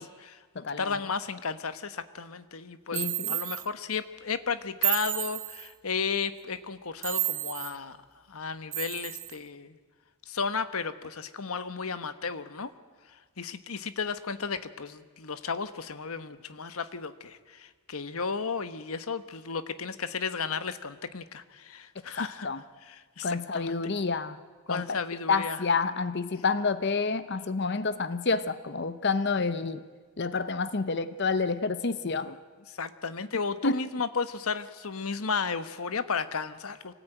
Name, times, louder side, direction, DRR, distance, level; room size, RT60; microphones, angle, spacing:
voice 1, 0.0-8.0 8.3-9.8 10.3-12.7 13.1-22.5 22.9-23.8 24.7-25.6 32.7-36.9, left 5 dB, 75° left, 12 dB, 1.1 m, -34 dB
voice 2, 0.5-1.0 2.9-3.4 22.2-22.6 23.2-24.4 24.7-24.9 25.3-29.8 30.2-32.4 33.6-33.8, left 4 dB, 50° left, 13 dB, 0.8 m, -29 dB
sound 1, 2.9-3.6 4.8-5.7 7.0-7.7 8.7-9.4, right 16 dB, 60° right, 1.7 m, -31 dB
24.5 x 18.0 x 9.0 m, 1.5 s
head